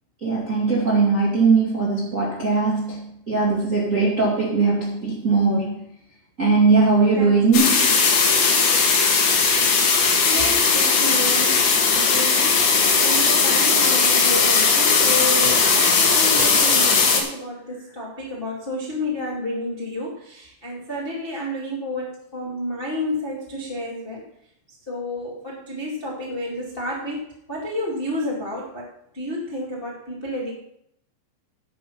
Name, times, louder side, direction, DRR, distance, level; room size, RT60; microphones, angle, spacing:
voice 1, 0.2-5.8 6.4-7.9, right 4 dB, 35° right, -5 dB, 1.2 m, -20 dB
voice 2, 7.1-7.8 10.3-24.2 24.9-28.9 29.1-30.5, left 1 dB, 40° left, -4 dB, 0.7 m, -30 dB
sound 1, 7.5-17.2, left 5 dB, 55° left, 2.4 m, -18 dB
11.0 x 7.7 x 5.5 m, 0.73 s
omnidirectional pair, 5.8 m